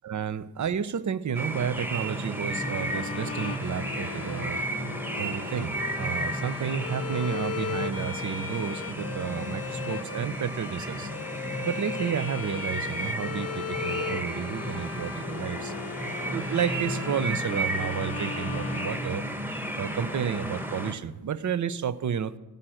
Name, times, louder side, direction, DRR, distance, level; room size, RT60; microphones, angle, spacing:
voice 1, 0.0-4.6 5.2-11.1 11.6-15.7 16.3-19.3 19.8-22.4, right 8 dB, 40° right, 16 dB, 0.8 m, -31 dB
sound 1, 1.3-20.9, right 1 dB, 5° right, 1.4 m, -33 dB
Bowed string instrument, 2.4-19.6, left 6 dB, 30° left, 0.8 m, -38 dB
16.5 x 6.5 x 6.3 m, 1.1 s
hypercardioid pair, 45°, 46 cm